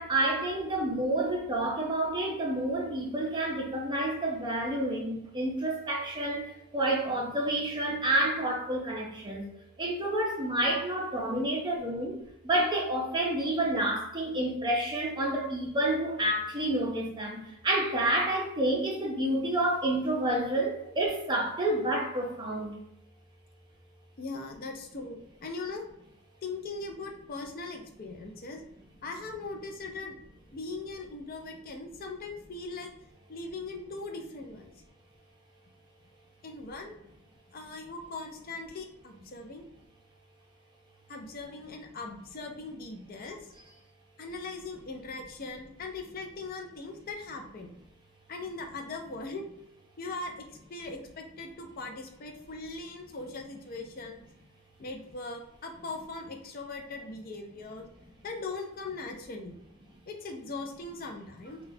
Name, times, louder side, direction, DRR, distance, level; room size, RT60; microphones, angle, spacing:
voice 1, 0.0-9.4 9.8-22.8, right 1 dB, 20° right, 0.5 m, -29 dB
voice 2, 24.2-25.8 26.4-28.7 29.0-30.2 30.5-32.9 33.3-34.7 36.4-37.0 37.5-39.6 41.1-43.4 44.2-47.7 48.3-49.4 50.0-54.3 54.8-57.8 58.2-59.5 60.1-61.6, left 3 dB, 40° left, 0.5 m, -40 dB
4.0 x 2.2 x 2.7 m
head